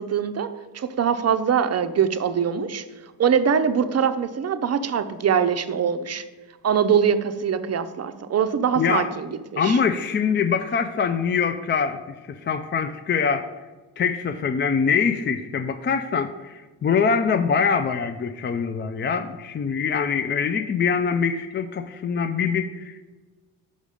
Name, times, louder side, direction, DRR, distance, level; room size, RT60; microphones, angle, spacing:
voice 1, 0.0-2.8 3.2-6.2 6.6-9.8, right 7 dB, 35° right, 10 dB, 0.5 m, -23 dB
voice 2, 8.8-9.1 9.6-13.5 14.0-23.1, left 6 dB, 30° left, 9 dB, 0.3 m, -24 dB
5.2 x 5.1 x 4.9 m, 1.3 s
supercardioid pair, 60°, 44 cm